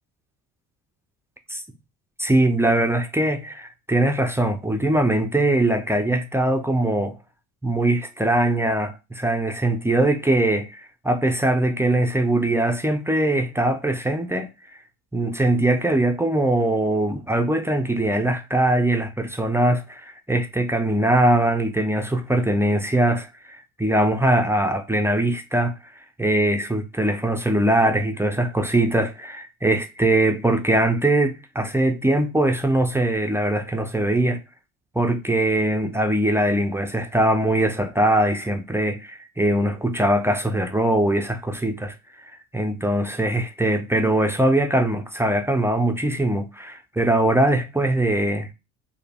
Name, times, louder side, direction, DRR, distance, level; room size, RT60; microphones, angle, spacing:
voice 1, 2.2-7.2 7.6-14.5 15.1-25.7 26.2-34.4 35.0-41.9 42.2-48.5, right 1 dB, 5° right, 0.4 m, -21 dB
4.6 x 2.1 x 3.4 m
supercardioid pair, 80°, 42 cm